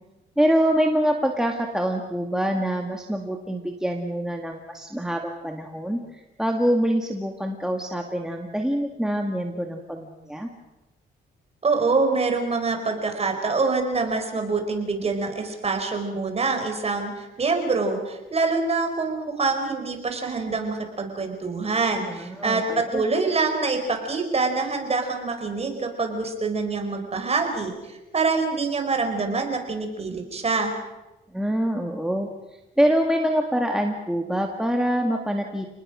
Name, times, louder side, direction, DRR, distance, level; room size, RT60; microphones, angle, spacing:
voice 1, 0.4-10.5 22.1-23.0 31.3-35.7, equal, 5° right, 2 dB, 2.0 m, -25 dB
voice 2, 11.6-30.7, right 4 dB, 30° right, 4 dB, 4.9 m, -25 dB
29.5 x 19.5 x 6.3 m, 1.0 s
cardioid pair, 115°, 20 cm